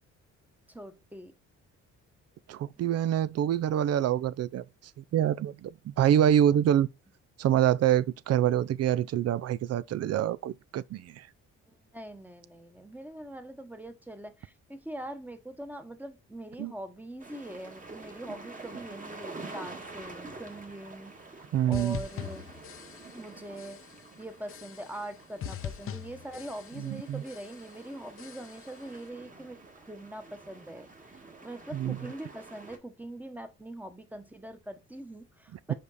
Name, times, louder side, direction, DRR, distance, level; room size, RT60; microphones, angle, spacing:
voice 1, 0.7-1.3 6.5-6.6 11.9-22.5 23.1-23.8 24.2-35.7, right 1 dB, 5° right, 1.1 m, -43 dB
voice 2, 2.5-4.6 5.0-6.9 7.4-11.3 16.6-16.7 21.5-22.0 26.8-27.2 31.7-32.0 35.7-35.8, right 11 dB, 55° right, 0.4 m, -26 dB
sound 1, 17.2-32.8, right 3 dB, 25° right, 1.7 m, -47 dB
sound 2, 21.7-23.3 23.6-24.1 24.5-25.1 25.4-27.0 27.3-27.8 28.2-28.8, left 9 dB, 45° left, 0.6 m, -42 dB
5.2 x 5.1 x 4.1 m
cardioid pair, 90°, 30 cm